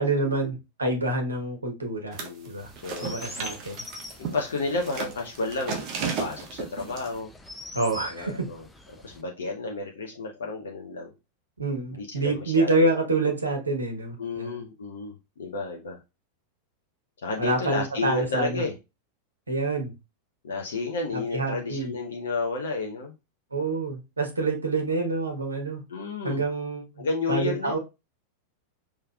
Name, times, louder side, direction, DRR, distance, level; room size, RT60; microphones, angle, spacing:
voice 1, 0.0-2.2 2.5-2.7 3.0-3.8 7.7-8.5 11.6-14.6 17.4-18.6 19.5-19.9 21.3-21.9 23.5-25.8 26.2-27.8, right 2 dB, 75° right, 3 dB, 1.1 m, -27 dB
sound 1, 2.1-2.5 2.8-7.1, right 5 dB, 40° right, 1.2 m, -34 dB
voice 2, 2.2-2.5 2.8-3.2 4.2-7.3 8.1-8.7 8.9-11.1 11.9-12.9 14.2-16.0 17.2-18.7 20.4-23.1 25.9-26.4 27.0-27.8, left 3 dB, 65° left, 1 dB, 0.8 m, -31 dB
Chirp tweet, 2.6-9.2, left 2 dB, 10° left, 0.6 m, -45 dB
4.8 x 3.3 x 2.3 m, 0.25 s
figure-of-eight pair, 90°, 0 cm